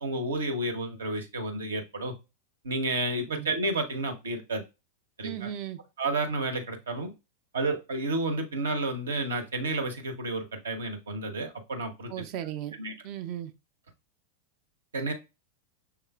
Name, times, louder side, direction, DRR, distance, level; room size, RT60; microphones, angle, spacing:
voice 1, 0.0-2.1 2.6-4.6 5.2-5.5 6.0-7.1 7.5-12.1 12.8-12.9 14.9-15.1, right 2 dB, 70° right, 0.7 m, -31 dB
voice 2, 5.2-5.8 12.1-12.8 13.0-13.5, right 11 dB, 45° right, 0.4 m, -36 dB
5.8 x 3.6 x 2.2 m
figure-of-eight pair, 90°, 0 cm